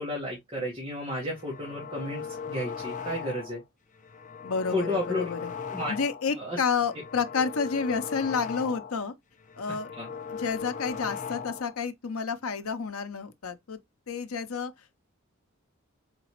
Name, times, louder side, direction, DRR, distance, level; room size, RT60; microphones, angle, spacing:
voice 1, 0.0-3.6 4.7-5.3 5.7-5.9 6.3-6.6 10.0-10.1, left 1 dB, 25° right, 1.5 m, -32 dB
sound 1, 1.2-3.6 4.0-6.3 6.7-9.1 9.4-11.8, left 6 dB, 35° left, 0.5 m, -38 dB
voice 2, 4.4-5.5 5.9-9.1 9.6-9.9 10.3-13.8 14.1-14.7, left 5 dB, 75° left, 0.6 m, -30 dB
4.0 x 3.6 x 2.9 m
head